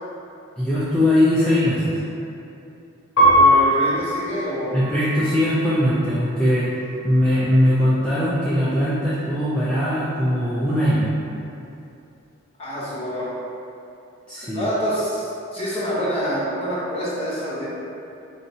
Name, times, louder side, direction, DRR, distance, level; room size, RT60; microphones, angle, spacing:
voice 1, 0.6-2.0 4.7-6.7 7.0-11.1 14.3-14.6, left 1 dB, 5° left, -11 dB, 0.4 m, -20 dB
Piano, 3.2-5.9 6.5-7.2, equal, 80° left, 1.0 m, -21 dB
voice 2, 3.4-4.8 12.6-13.3 14.5-17.7, equal, 30° left, -8 dB, 0.8 m, -26 dB
4.7 x 2.8 x 2.7 m, 2.7 s
head